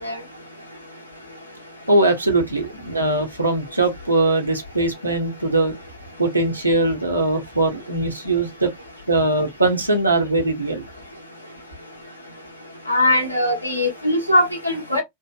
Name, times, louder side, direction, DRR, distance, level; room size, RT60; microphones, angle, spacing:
voice 1, 1.9-5.7 6.2-8.7 9.1-10.8, right 2 dB, 85° right, 0.9 m, -21 dB
voice 2, 12.9-15.0, left 1 dB, 85° left, 1.0 m, -20 dB
3.5 x 2.0 x 2.3 m
figure-of-eight pair, 90°, 0 cm